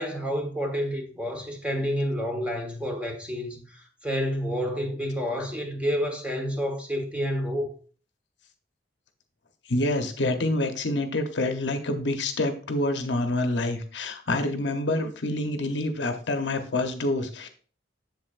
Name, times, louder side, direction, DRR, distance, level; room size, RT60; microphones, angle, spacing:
voice 1, 0.0-7.7, equal, 5° right, 1.1 m, -29 dB
voice 2, 9.7-17.5, left 2 dB, 70° left, 0.8 m, -27 dB
7.6 x 7.2 x 2.5 m
head